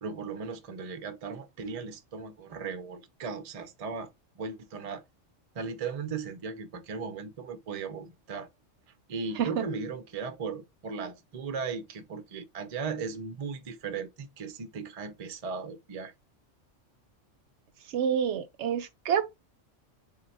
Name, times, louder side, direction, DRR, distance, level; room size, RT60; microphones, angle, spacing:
voice 1, 0.0-4.1 4.4-5.0 5.5-8.5 9.1-16.1, right 5 dB, 45° right, 0.5 m, -37 dB
voice 2, 17.9-19.2, right 8 dB, 70° right, 0.8 m, -28 dB
3.7 x 2.2 x 4.0 m
omnidirectional pair, 1.3 m